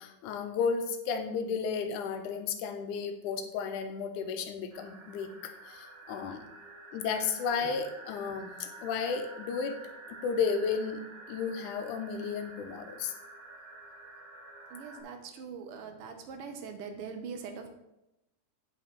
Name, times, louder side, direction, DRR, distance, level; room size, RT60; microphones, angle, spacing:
voice 1, 0.0-6.5 6.9-9.8 10.1-11.0 11.3-13.1, left 6 dB, 80° left, 7 dB, 2.3 m, -33 dB
sound 1, 4.7-15.0, right 2 dB, 45° right, 1.5 m, -49 dB
voice 2, 14.7-17.7, right 5 dB, 80° right, 5 dB, 1.3 m, -42 dB
9.4 x 5.4 x 4.5 m, 0.89 s
omnidirectional pair, 3.6 m